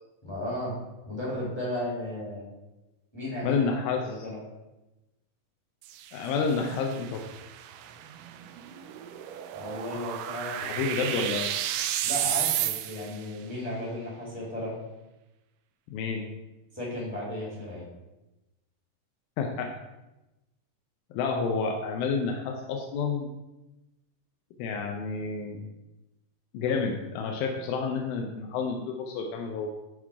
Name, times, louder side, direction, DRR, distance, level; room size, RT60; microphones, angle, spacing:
voice 1, 0.2-0.7 1.0-2.4 3.1-3.7 4.0-4.4 9.5-11.0 12.0-14.7 16.7-17.9, left 1 dB, 10° left, -5 dB, 1.5 m, -35 dB
voice 2, 3.4-4.0 6.1-7.2 10.6-11.5 15.9-16.2 19.4-19.7 21.1-23.3 24.6-25.6 26.5-29.7, left 5 dB, 90° left, 2 dB, 2.5 m, -29 dB
sound 1, 5.8-13.3, right 11 dB, 80° right, 1.9 m, -33 dB
11.0 x 3.8 x 4.7 m, 1.0 s
omnidirectional pair, 4.1 m